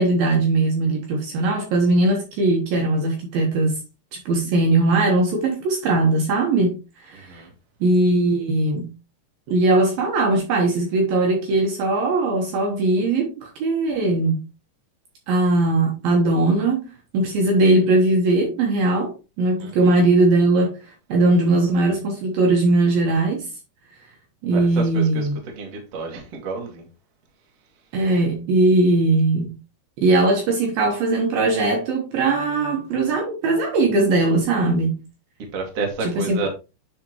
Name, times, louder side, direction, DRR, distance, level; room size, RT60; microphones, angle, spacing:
voice 1, 0.0-3.8 4.3-6.8 7.0-7.4 7.8-8.9 9.5-14.4 15.3-20.8 21.1-23.5 24.4-25.4 27.9-29.6 30.0-35.0 36.0-36.5, right 2 dB, 70° right, 2.7 m, -20 dB
voice 2, 24.5-25.3 25.6-26.9 35.5-36.5, right 3 dB, 50° right, 2.2 m, -30 dB
10.0 x 4.2 x 3.0 m
omnidirectional pair, 5.1 m